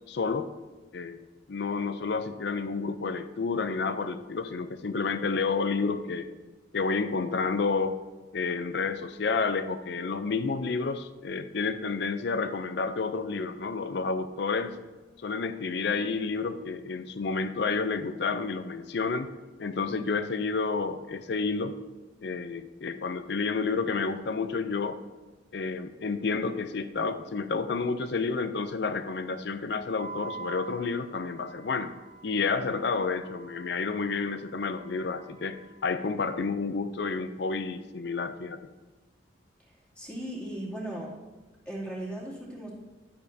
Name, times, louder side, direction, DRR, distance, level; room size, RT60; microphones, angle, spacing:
voice 1, 0.1-0.5 0.9-1.2 1.5-6.3 6.7-8.0 8.3-14.8 15.2-19.3 19.6-21.7 22.2-25.0 25.5-31.9 32.2-38.6, left 4 dB, 60° left, 11 dB, 0.5 m, -30 dB
Wind instrument woodwind instrument, 29.9-36.1, right 5 dB, 40° right, 0.8 m, -46 dB
voice 2, 40.0-41.1 41.7-42.7, right 1 dB, 10° left, -7 dB, 2.6 m, -37 dB
12.0 x 8.5 x 2.7 m, 1.2 s
head